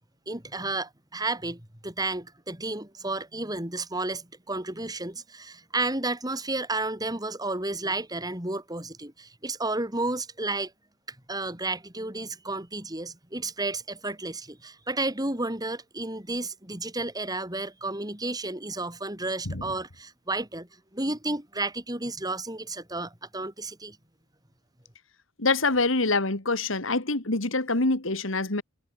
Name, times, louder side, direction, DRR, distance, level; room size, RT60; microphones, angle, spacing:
voice 1, 0.3-10.7 11.1-24.0, right 2 dB, 20° right, 6.1 m, -32 dB
voice 2, 25.4-28.6, left 3 dB, 80° left, 2.6 m, -25 dB
head